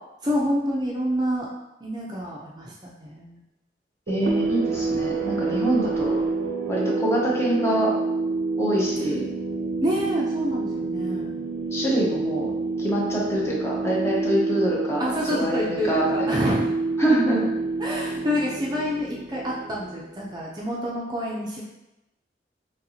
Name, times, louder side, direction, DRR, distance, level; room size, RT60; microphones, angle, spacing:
voice 1, 0.2-1.5 1.8-3.4 9.0-9.1 9.8-11.3 15.0-16.7 17.8-21.6, equal, 25° right, -4 dB, 0.5 m, -28 dB
voice 2, 4.1-6.2 6.7-7.9 8.6-9.2 11.7-12.5 12.8-16.3 17.0-17.5, right 1 dB, 15° left, -4 dB, 0.7 m, -25 dB
sound 1, 4.1-20.4, right 3 dB, 90° right, 0.5 m, -28 dB
4.2 x 3.1 x 2.7 m, 0.94 s
head